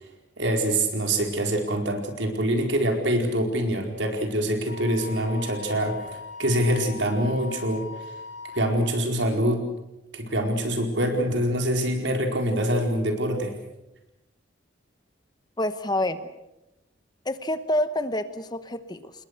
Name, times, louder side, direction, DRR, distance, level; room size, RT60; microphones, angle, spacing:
voice 1, 0.4-6.0 6.4-7.8 8.5-9.6 10.1-13.5, right 1 dB, 75° right, 3 dB, 4.6 m, -25 dB
Wind instrument woodwind instrument, 4.7-8.7, left 3 dB, 80° left, 4.1 m, -40 dB
voice 2, 15.6-16.2 17.2-19.1, left 1 dB, 20° left, 11 dB, 1.0 m, -27 dB
28.5 x 21.0 x 6.7 m, 0.95 s
head